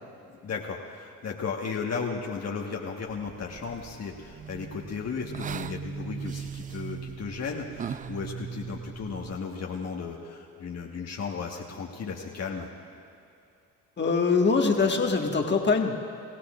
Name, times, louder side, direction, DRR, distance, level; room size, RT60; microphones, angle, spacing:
voice 1, 0.3-12.7, left 5 dB, 45° left, -1 dB, 1.5 m, -35 dB
sound 1, 3.1-9.4, right 7 dB, 25° right, 0.3 m, -39 dB
voice 2, 14.0-16.0, left 4 dB, 30° left, 2 dB, 1.6 m, -23 dB
25.5 x 15.5 x 2.5 m, 2.5 s
hypercardioid pair, 60°, 36 cm